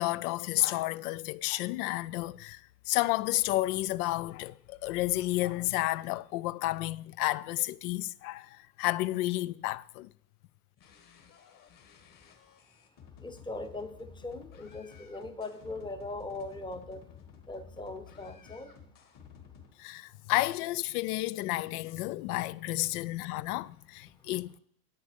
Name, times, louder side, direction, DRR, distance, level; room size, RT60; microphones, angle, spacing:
voice 1, 0.0-10.1 19.8-24.6, left 18 dB, 70° left, 0.5 m, -31 dB
sound 1, 10.8-19.7, left 7 dB, 45° left, 1.9 m, -53 dB
voice 2, 13.2-17.0 17.5-18.7, left 2 dB, 10° left, 0.8 m, -40 dB
10.0 x 8.4 x 5.1 m
supercardioid pair, 115°, 46 cm